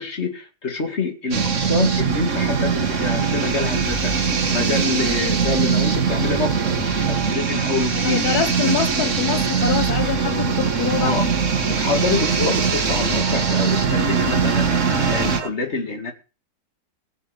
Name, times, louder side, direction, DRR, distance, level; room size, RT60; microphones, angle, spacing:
voice 1, 0.0-8.2 8.6-8.7 11.0-11.3 11.7-16.1, left 3 dB, 45° left, 2.6 m, -26 dB
sound 1, 1.3-15.4, right 6 dB, 50° right, 1.8 m, -21 dB
voice 2, 7.9-11.2, left 8 dB, 80° left, 1.6 m, -25 dB
sound 2, 8.2-15.5, right 5 dB, 75° right, 1.8 m, -35 dB
18.0 x 7.3 x 6.6 m
omnidirectional pair, 1.6 m